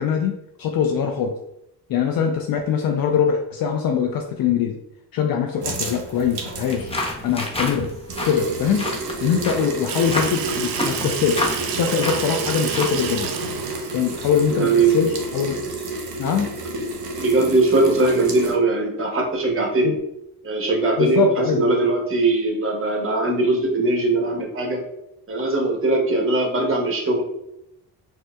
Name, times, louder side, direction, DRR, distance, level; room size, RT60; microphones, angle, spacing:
voice 1, 0.0-1.4 1.9-4.8 5.1-6.9 7.2-7.9 8.2-8.9 9.2-13.3 13.9-15.6 16.2-16.6 19.8-20.0 21.0-21.7, left 7 dB, 60° left, 3 dB, 0.5 m, -22 dB
sound 1, 5.6-18.5, right 2 dB, 65° right, 0.9 m, -31 dB
sound 2, 6.6-13.1, left 1 dB, 15° left, 0.7 m, -30 dB
Water tap faucet / Sink (filling or washing), 9.9-15.3, right 7 dB, 85° right, 0.5 m, -30 dB
voice 2, 14.5-15.0 17.2-19.9 20.4-24.8 25.3-27.2, right 2 dB, 30° right, 1 dB, 1.0 m, -20 dB
4.4 x 2.1 x 2.2 m, 0.81 s
supercardioid pair, 60°, 41 cm